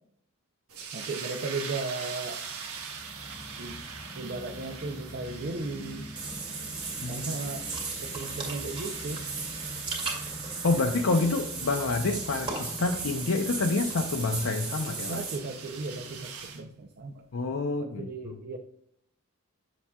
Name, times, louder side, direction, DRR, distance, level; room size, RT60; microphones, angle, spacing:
sound 1, 0.7-16.6, right 6 dB, 80° right, 1.2 m, -43 dB
voice 1, 0.9-2.5 3.6-3.8 4.1-6.1 7.1-7.7 8.0-9.3 15.0-17.3 17.8-18.6, right 3 dB, 50° right, 4 dB, 0.6 m, -36 dB
sound 2, 2.3-14.5, left 1 dB, 15° left, 0.4 m, -45 dB
Water / Bathtub (filling or washing), 6.2-15.4, right 4 dB, 25° right, 2.1 m, -36 dB
voice 2, 10.6-15.2 17.3-18.4, left 3 dB, 65° left, 3 dB, 0.6 m, -28 dB
7.2 x 7.0 x 2.3 m, 0.67 s
head